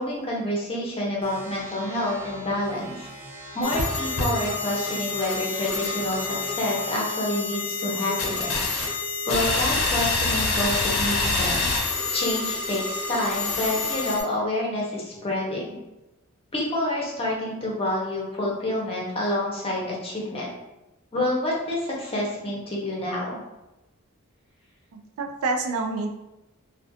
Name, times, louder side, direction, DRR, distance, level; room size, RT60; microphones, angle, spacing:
voice 1, 0.0-3.1 3.5-8.7 9.3-11.6 12.1-15.8 16.5-20.5 21.1-23.4, left 1 dB, 25° left, -4 dB, 0.6 m, -28 dB
sound 1, 1.2-7.0, equal, 35° right, 0.6 m, -41 dB
sound 2, 3.6-14.2, left 3 dB, 85° left, 0.5 m, -27 dB
voice 2, 24.9-26.1, right 3 dB, 85° right, 3 dB, 0.4 m, -28 dB
2.3 x 2.1 x 2.7 m, 0.97 s
head